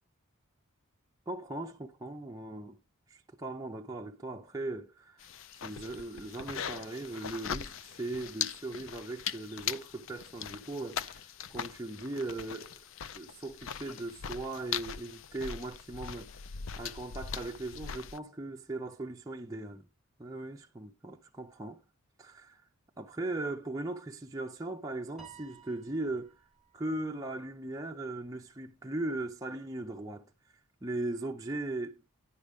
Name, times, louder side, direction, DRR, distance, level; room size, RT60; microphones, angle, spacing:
voice 1, 1.3-2.8 3.1-5.3 5.6-12.8 13.1-16.3 16.8-19.9 20.2-21.8 22.2-22.6 23.0-26.4 26.7-30.3 30.8-32.0, right 2 dB, 15° right, 0.4 m, -38 dB
sound 1, 5.2-18.2, left 8 dB, 60° left, 0.4 m, -40 dB
Piano, 25.2-27.7, right 7 dB, ahead, 1.5 m, -56 dB
10.0 x 5.2 x 5.0 m
head